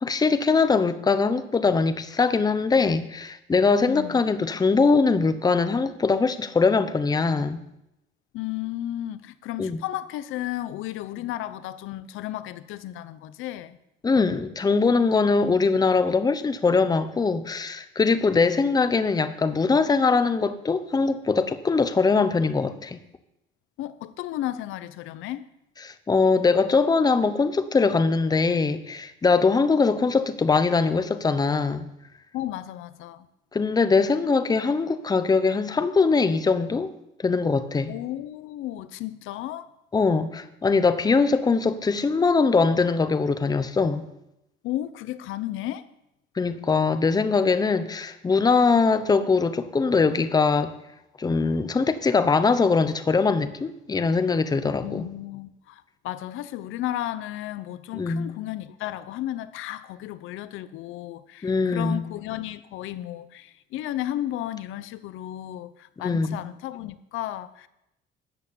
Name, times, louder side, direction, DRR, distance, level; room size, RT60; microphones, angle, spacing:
voice 1, 0.0-7.6 9.6-9.8 14.0-23.0 25.8-31.9 33.5-36.9 37.2-37.9 39.9-44.1 46.4-50.7 51.2-55.1 57.9-58.3 61.4-62.0 66.0-66.4, left 4 dB, 20° left, 0.9 m, -22 dB
voice 2, 3.9-4.2 8.3-13.8 23.8-25.5 32.3-33.3 37.9-39.7 44.6-45.9 54.8-67.7, left 13 dB, 85° left, 0.8 m, -33 dB
13.0 x 8.3 x 8.7 m
cardioid pair, 130°, 20 cm